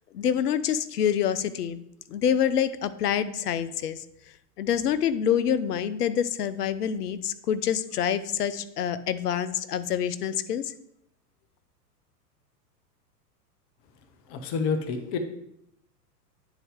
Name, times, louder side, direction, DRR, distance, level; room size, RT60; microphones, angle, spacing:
voice 1, 0.1-1.8 2.1-4.0 4.6-10.7, left 9 dB, 70° left, 14 dB, 0.6 m, -26 dB
voice 2, 14.3-15.2, left 5 dB, 20° left, 8 dB, 0.4 m, -28 dB
9.1 x 4.0 x 3.5 m, 0.77 s
figure-of-eight pair, 100°, 48 cm